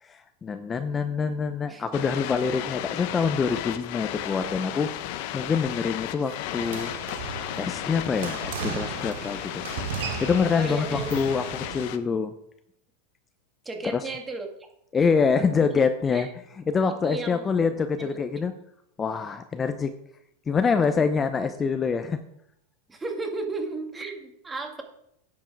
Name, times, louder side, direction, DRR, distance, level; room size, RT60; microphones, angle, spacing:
voice 1, 0.0-6.9 7.6-9.6 10.2-12.3 13.9-14.1 14.9-16.3 16.7-18.5 19.0-19.9 20.5-22.2, left 5 dB, 20° left, 9 dB, 0.7 m, -25 dB
voice 2, 1.7-2.1 10.5-11.4 13.7-14.5 15.0-15.1 15.7-15.8 16.1-16.3 17.0-17.5 18.0-18.1 20.8-21.1 22.9-24.8, right 3 dB, 15° right, 3 dB, 2.0 m, -34 dB
sound 1, 1.9-12.0, left 13 dB, 55° left, 0.8 m, -34 dB
sound 2, 6.6-11.8, right 7 dB, 70° right, 1.0 m, -36 dB
10.0 x 7.5 x 4.6 m, 0.75 s
hypercardioid pair, 100°, 0 cm